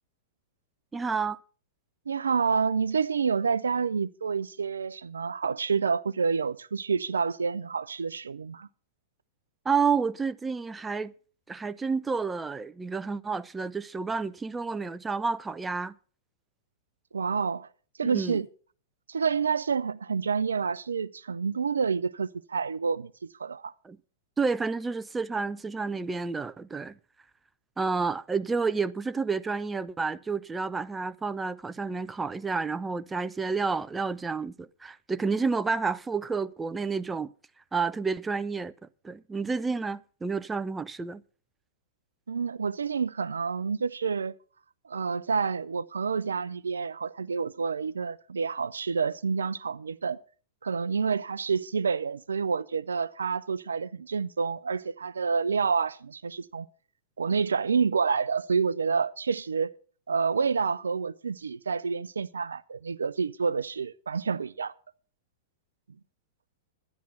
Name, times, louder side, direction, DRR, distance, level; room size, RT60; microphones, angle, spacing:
voice 1, 0.9-1.4 9.7-11.1 11.5-15.9 18.0-18.4 23.8-24.0 24.4-26.9 27.8-37.3 37.7-38.7 39.0-41.2, right 4 dB, 10° right, 0.5 m, -30 dB
voice 2, 2.1-8.7 17.1-17.7 18.0-18.5 19.1-23.1 23.4-23.7 42.3-44.3 44.8-50.2 50.6-56.7 57.2-59.7 60.1-64.7, right 5 dB, 75° right, 0.5 m, -28 dB
11.0 x 11.0 x 5.5 m
figure-of-eight pair, 100°, 0 cm